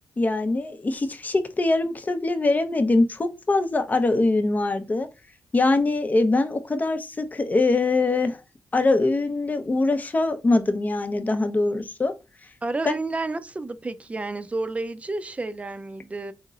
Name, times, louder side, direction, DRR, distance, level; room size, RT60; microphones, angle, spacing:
voice 1, 0.2-5.1 5.5-8.4 8.7-12.1 12.9-13.0, left 2 dB, 30° left, 0.6 m, -23 dB
voice 2, 12.6-16.3, right 2 dB, 25° right, 0.5 m, -30 dB
3.9 x 2.9 x 2.4 m
cardioid pair, 60°, 5 cm